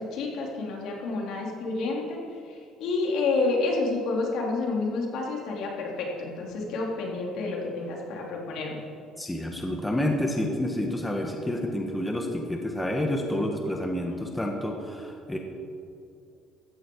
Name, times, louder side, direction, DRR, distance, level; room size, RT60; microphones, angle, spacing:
voice 1, 0.0-2.2 2.5-8.8, left 3 dB, 70° left, -1 dB, 3.7 m, -29 dB
voice 2, 9.2-15.4, left 1 dB, 10° left, 2 dB, 1.5 m, -29 dB
15.5 x 14.0 x 4.8 m, 2.5 s
cardioid pair, 125°, 0 cm